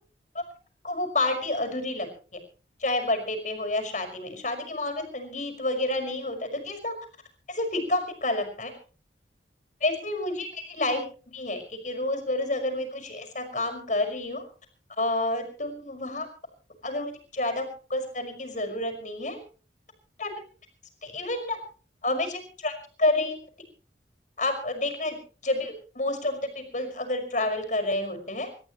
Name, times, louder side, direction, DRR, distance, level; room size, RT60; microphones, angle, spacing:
voice 1, 0.8-2.1 2.3-2.4 2.8-6.9 7.5-8.7 9.8-11.0 11.3-14.4 15.0-16.3 16.8-19.4 20.2-20.3 21.0-21.6 22.0-22.7 23.0-23.4 24.4-25.2 25.4-28.5, left 2 dB, 45° left, 6 dB, 5.4 m, -29 dB
28.5 x 14.0 x 3.1 m, 0.39 s
head